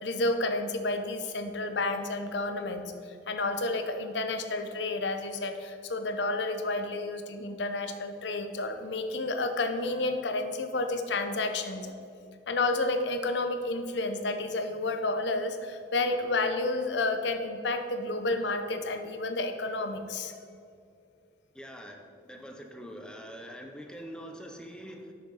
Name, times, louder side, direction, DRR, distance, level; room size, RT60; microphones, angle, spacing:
voice 1, 0.0-2.9 3.3-11.9 12.5-20.3, left 2 dB, 70° left, 7 dB, 0.7 m, -30 dB
voice 2, 21.5-25.1, equal, 5° left, 3 dB, 0.7 m, -44 dB
6.6 x 6.4 x 5.5 m, 2.4 s
head